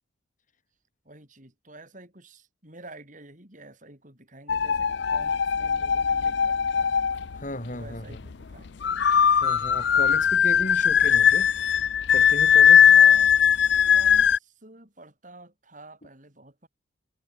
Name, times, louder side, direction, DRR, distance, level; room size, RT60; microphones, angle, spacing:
voice 1, 1.0-7.1 7.7-8.9 12.4-13.4 13.7-16.7, right 2 dB, 40° right, 6.9 m, -48 dB
sound 1, 4.5-7.4 8.8-14.4, left 8 dB, 60° left, 0.5 m, -19 dB
voice 2, 7.3-8.2 9.4-11.7 12.1-12.9, left 1 dB, 40° left, 4.8 m, -35 dB
head